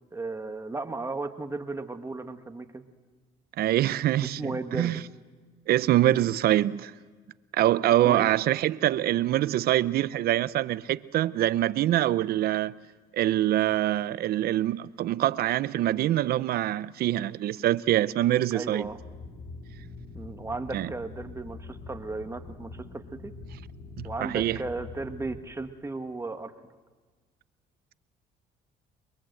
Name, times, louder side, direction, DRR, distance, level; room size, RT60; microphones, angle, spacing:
voice 1, 0.1-2.8 4.2-5.0 8.0-8.3 18.5-19.0 20.1-23.3 24.0-26.5, right 3 dB, 15° right, 1.3 m, -35 dB
voice 2, 3.6-5.0 5.7-6.9 7.5-12.7 13.1-18.9 20.7-20.9 24.0-24.6, right 13 dB, 65° right, 0.7 m, -25 dB
sound 1, 18.8-25.4, left 3 dB, 75° left, 4.3 m, -44 dB
29.0 x 22.0 x 7.9 m
cardioid pair, 110°, 17 cm